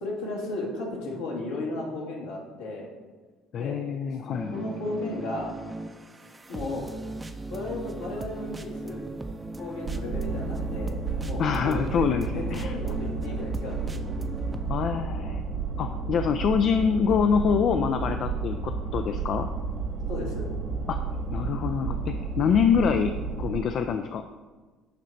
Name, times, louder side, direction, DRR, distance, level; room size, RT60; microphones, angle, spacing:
voice 1, 0.0-2.9 3.5-3.8 4.5-5.5 6.5-6.9 7.5-9.1 9.6-12.1 12.3-14.0 16.2-16.4 20.1-20.5 22.6-22.7, left 2 dB, 75° left, -2 dB, 1.5 m, -35 dB
voice 2, 3.5-4.6 11.4-12.8 14.7-15.4 15.8-19.5 20.9-23.1 23.4-24.3, left 7 dB, 55° left, 7 dB, 0.3 m, -25 dB
sound 1, 4.3-14.7, right 2 dB, 20° right, 0.5 m, -38 dB
sound 2, 9.9-23.6, right 4 dB, 65° right, 0.8 m, -32 dB
9.1 x 3.2 x 4.0 m, 1.3 s
hypercardioid pair, 55°, 0 cm